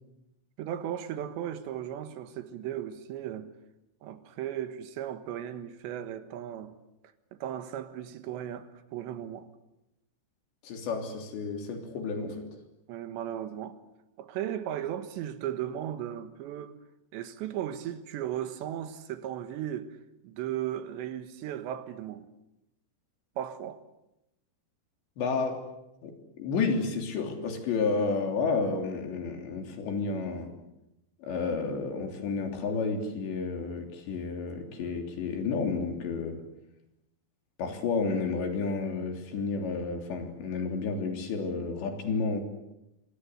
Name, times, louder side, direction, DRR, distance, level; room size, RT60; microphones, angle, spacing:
voice 1, 0.6-3.5 4.0-6.7 7.3-9.5 12.9-13.8 14.2-16.8 17.1-20.0 20.2-22.3 23.4-23.8, right 11 dB, 90° right, 3.7 m, -36 dB
voice 2, 10.6-12.5 25.2-25.6 26.0-30.5 31.2-36.4 37.6-42.4, left 4 dB, 85° left, 5.5 m, -31 dB
27.5 x 24.0 x 8.0 m
omnidirectional pair, 4.9 m